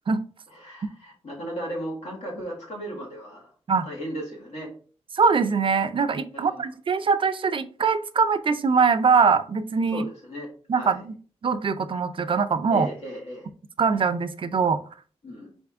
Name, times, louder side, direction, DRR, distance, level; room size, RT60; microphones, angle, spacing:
voice 1, 0.5-3.5 3.8-4.7 6.3-6.7 9.9-10.5 10.7-11.0 12.7-13.5 15.2-15.5, right 1 dB, 85° left, -2 dB, 2.1 m, -36 dB
voice 2, 5.1-10.0 10.7-11.1 11.4-12.9 13.8-14.8, right 5 dB, 50° right, 11 dB, 0.4 m, -22 dB
4.1 x 3.5 x 3.5 m, 0.40 s
wide cardioid pair, 140°, 11 cm